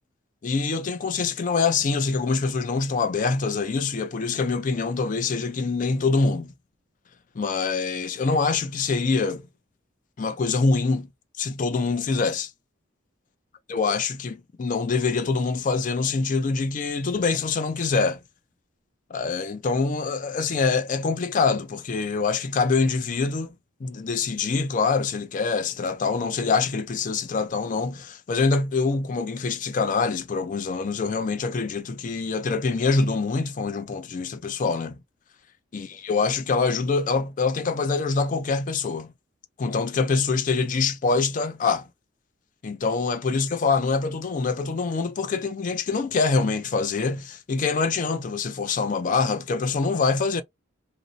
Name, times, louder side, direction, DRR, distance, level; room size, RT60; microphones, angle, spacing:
voice 1, 0.4-6.5 7.4-9.5 10.2-11.1 11.4-12.5 13.7-18.2 19.1-23.5 23.8-35.0 35.7-39.1 39.6-41.9 42.6-50.4, left 4 dB, 40° left, 0.4 m, -25 dB
2.6 x 2.0 x 2.5 m
head